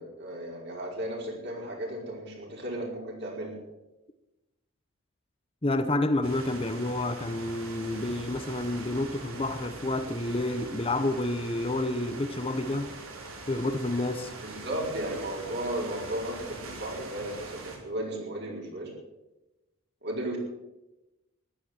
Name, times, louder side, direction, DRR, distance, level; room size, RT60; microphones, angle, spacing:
voice 1, 0.0-3.6 14.4-18.9 20.0-20.4, right 1 dB, 50° right, 5.1 m, -35 dB
voice 2, 5.6-12.9 13.5-14.3, left 2 dB, 25° left, 0.8 m, -29 dB
sound 1, 6.2-17.8, right 3 dB, 80° right, 3.6 m, -43 dB
15.0 x 12.0 x 7.8 m
head